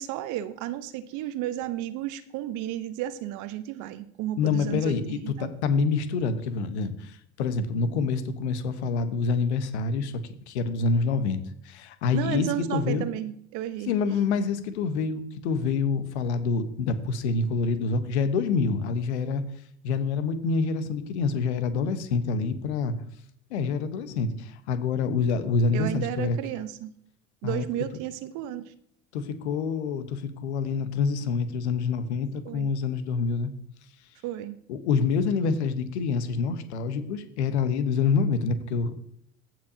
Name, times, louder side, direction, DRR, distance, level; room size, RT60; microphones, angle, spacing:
voice 1, 0.0-5.5 12.1-13.9 25.7-26.9 27.4-28.7 32.4-32.7 34.2-34.6, right 13 dB, 60° right, 13 dB, 0.9 m, -33 dB
voice 2, 4.4-10.1 10.5-11.4 11.6-13.0 13.9-19.4 19.8-22.9 23.5-26.4 27.4-27.6 29.1-33.5 34.7-38.9, left 4 dB, 75° left, 10 dB, 1.1 m, -26 dB
15.5 x 5.9 x 2.8 m, 0.69 s
hypercardioid pair, 65°, 34 cm